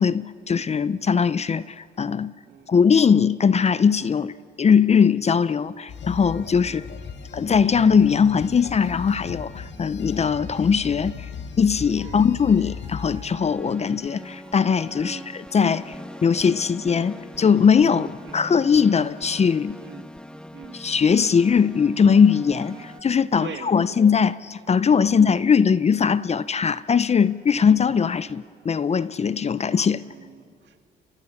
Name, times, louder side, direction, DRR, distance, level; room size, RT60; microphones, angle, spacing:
voice 1, 0.0-2.3 2.7-4.3 4.6-6.9 7.3-11.3 11.6-16.0 16.2-18.1 18.3-19.8 20.7-30.0, left 6 dB, 35° left, 0.6 m, -20 dB
sound 1, 5.9-13.2, left 6 dB, 65° left, 2.3 m, -36 dB
sound 2, 12.0-13.6 14.1-20.0 22.1-23.1, right 2 dB, 20° right, 4.2 m, -53 dB
sound 3, 13.4-23.0, left 1 dB, 5° left, 0.8 m, -41 dB
voice 2, 15.0-15.3 17.9-18.4 19.8-20.1 20.5-20.8 22.7-22.9 23.4-24.0 25.1-25.3 27.5-27.7 30.0-30.8, right 7 dB, 65° right, 2.0 m, -43 dB
30.0 x 24.5 x 7.2 m
cardioid pair, 90°, 20 cm